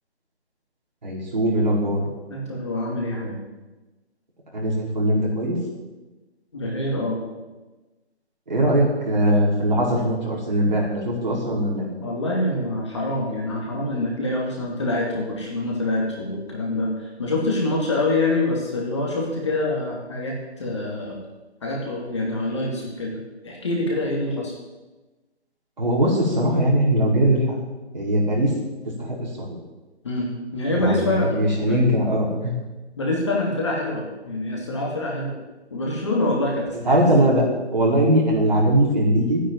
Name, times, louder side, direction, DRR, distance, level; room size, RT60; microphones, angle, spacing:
voice 1, 1.0-2.0 4.5-5.6 8.5-11.9 25.8-27.4 27.9-28.5 29.4-29.6 30.7-32.5 36.9-39.4, right 1 dB, 40° right, -3 dB, 5.3 m, -20 dB
voice 2, 2.0-3.4 6.5-7.2 12.0-21.2 21.6-23.2 23.4-24.5 30.0-31.8 33.0-35.3 35.7-37.3, left 2 dB, 25° left, -2 dB, 2.5 m, -26 dB
14.0 x 10.0 x 9.5 m, 1.1 s
figure-of-eight pair, 170°, 34 cm